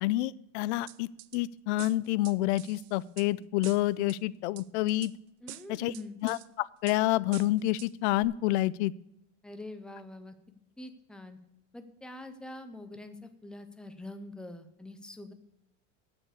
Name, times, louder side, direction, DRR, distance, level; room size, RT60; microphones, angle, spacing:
voice 1, 0.0-5.1 5.7-5.9 6.2-8.9, left 16 dB, 60° left, 20 dB, 0.5 m, -28 dB
sound 1, 0.9-1.4 1.8-3.3 3.6-4.2 4.6-5.1 5.5-6.5 6.9-7.0 7.3-7.9 8.2-8.3, right 18 dB, 70° right, 0.6 m, -47 dB
voice 2, 5.4-6.2 9.4-10.3 10.8-11.4 11.7-15.3, left 2 dB, ahead, 8 dB, 0.4 m, -44 dB
8.9 x 7.2 x 8.0 m, 0.86 s
supercardioid pair, 160°, 39 cm